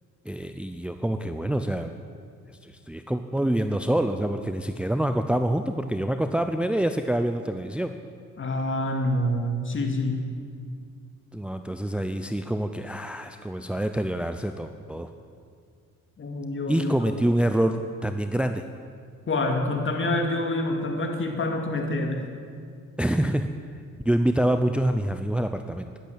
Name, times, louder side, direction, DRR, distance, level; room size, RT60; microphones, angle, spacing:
voice 1, 0.3-1.9 2.6-7.9 11.3-15.1 16.7-18.6 23.0-23.5 24.0-25.9, right 1 dB, 5° right, 7 dB, 0.6 m, -26 dB
voice 2, 8.4-10.2 16.2-16.9 19.3-22.3, left 1 dB, 40° left, 3 dB, 2.5 m, -27 dB
12.0 x 11.5 x 8.8 m, 2.2 s
cardioid pair, 90°, 30 cm